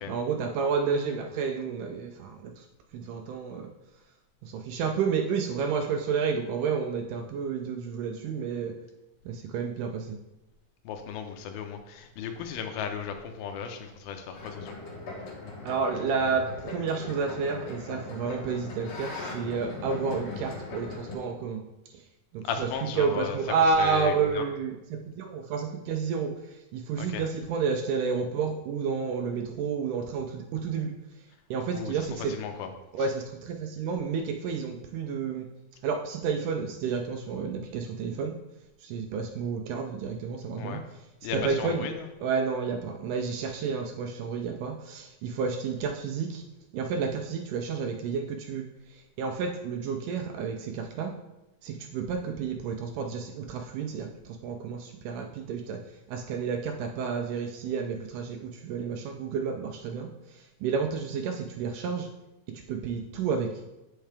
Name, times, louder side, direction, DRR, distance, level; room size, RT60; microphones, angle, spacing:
voice 1, 0.1-2.7 2.9-3.7 4.4-8.8 9.3-10.2 15.7-21.6 21.9-22.1 22.3-32.3 32.9-35.5 35.8-38.4 38.8-41.1 41.3-41.9 42.2-46.4 46.7-51.2 51.6-62.1 62.5-63.5, right 5 dB, 80° right, 4 dB, 1.9 m, -30 dB
voice 2, 10.9-14.8 22.4-23.4 23.8-24.4 27.0-27.2 31.7-31.9 32.3-32.7 40.6-40.8 41.2-41.9, left 7 dB, 85° left, 6 dB, 2.6 m, -35 dB
sound 1, 14.3-21.1, left 3 dB, 55° left, 2.1 m, -39 dB
9.0 x 5.6 x 3.4 m, 0.99 s
omnidirectional pair, 4.1 m